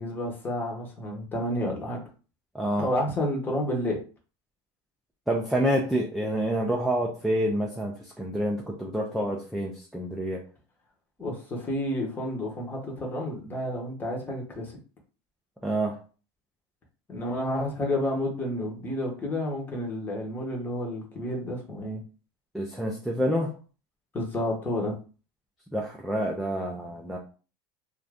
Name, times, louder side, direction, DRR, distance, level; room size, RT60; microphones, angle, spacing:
voice 1, 0.0-2.0 2.8-4.0 11.2-14.7 17.1-22.0 24.1-24.9, left 1 dB, 15° left, -1 dB, 0.9 m, -30 dB
voice 2, 2.5-2.9 5.3-10.4 15.6-16.0 22.5-23.6 25.7-27.2, equal, ahead, -1 dB, 0.3 m, -28 dB
2.6 x 2.5 x 3.3 m, 0.36 s
supercardioid pair, 150°, 12 cm